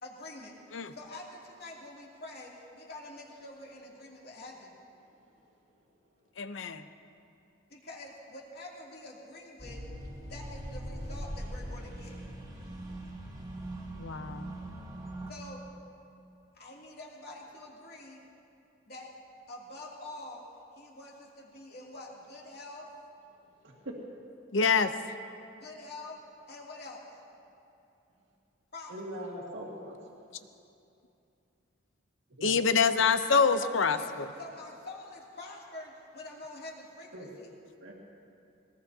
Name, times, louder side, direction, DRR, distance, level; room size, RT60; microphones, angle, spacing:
voice 1, 0.0-0.5 0.9-4.8 7.7-9.8 10.2-12.2 15.3-15.6 16.5-18.2 18.9-19.1 19.5-20.5 20.8-22.9 25.6-26.2 26.5-27.0 28.7-29.2 33.6-34.1 34.4-37.5, left 2 dB, 55° left, -4 dB, 2.7 m, -46 dB
voice 2, 6.4-6.9 14.0-14.6 24.5-24.9 32.4-34.3, left 5 dB, 75° left, 10 dB, 0.7 m, -26 dB
sound 1, 9.6-15.3, right 1 dB, 20° right, 1.5 m, -41 dB
voice 3, 23.6-23.9 28.9-30.0 32.4-32.5 37.1-37.3 37.8-37.9, equal, 75° right, -2 dB, 2.0 m, -41 dB
22.0 x 19.5 x 2.8 m, 2.7 s
head